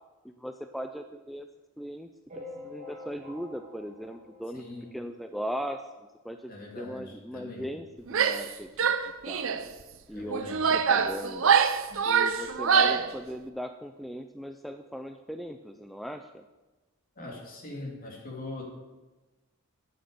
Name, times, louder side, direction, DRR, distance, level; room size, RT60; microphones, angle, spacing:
voice 1, 0.2-1.5 1.8-2.1 2.4-4.6 4.9-5.8 6.2-6.5 6.8-8.9 9.2-9.5 10.1-10.4 10.7-11.6 12.1-16.5, equal, ahead, 6 dB, 0.4 m, -38 dB
sound 1, 2.3-5.2 5.6-5.7 5.9-6.1 6.3-6.4 7.3-7.4 7.9-8.0, left 2 dB, 35° right, 2.4 m, -46 dB
voice 2, 4.5-4.9 6.5-7.8 10.1-10.8 11.9-12.0 17.1-18.6, left 2 dB, 45° left, -1 dB, 2.9 m, -42 dB
Female speech woman speaking / Yell, 8.1-8.5 8.8-9.6 10.3-13.1, right 6 dB, 65° right, 0.7 m, -24 dB
9.0 x 8.8 x 6.8 m, 1.2 s
head